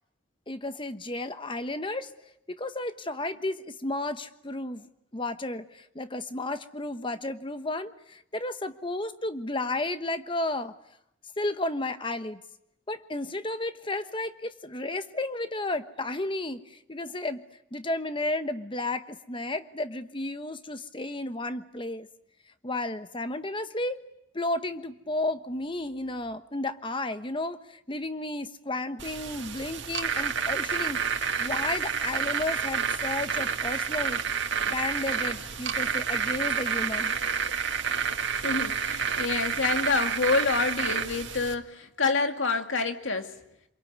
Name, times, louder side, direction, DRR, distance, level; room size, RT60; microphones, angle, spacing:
voice 1, 0.5-2.1 2.5-10.7 11.4-12.4 12.9-17.4 17.7-22.1 22.6-24.0 24.3-31.0 31.4-34.2 34.7-37.2, left 2 dB, 25° left, 10 dB, 1.1 m, -33 dB
sound 1, 29.0-41.5, right 6 dB, 65° right, 1.9 m, -29 dB
voice 2, 37.2-37.5 38.4-43.3, left 4 dB, 75° left, 6 dB, 2.1 m, -28 dB
27.5 x 22.5 x 9.5 m, 0.81 s
head